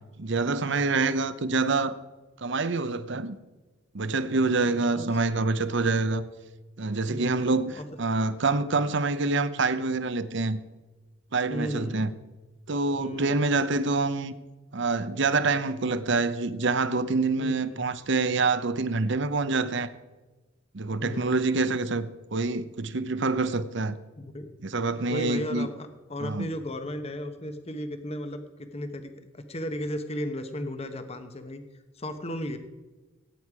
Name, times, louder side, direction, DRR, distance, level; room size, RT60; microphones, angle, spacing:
voice 1, 0.2-1.9 2.4-3.4 3.9-6.3 6.8-10.6 11.3-12.1 12.7-14.3 14.7-19.9 20.7-23.9 24.6-25.7 26.2-26.5, right 3 dB, 60° right, 0.8 m, -26 dB
voice 2, 4.5-5.1 7.1-7.3 7.7-7.9 11.5-12.1 12.9-13.4 17.4-17.8 21.0-21.4 24.2-24.5 25.1-31.6 31.9-32.6, left 1 dB, 30° left, 1.0 m, -35 dB
17.0 x 9.3 x 4.8 m
head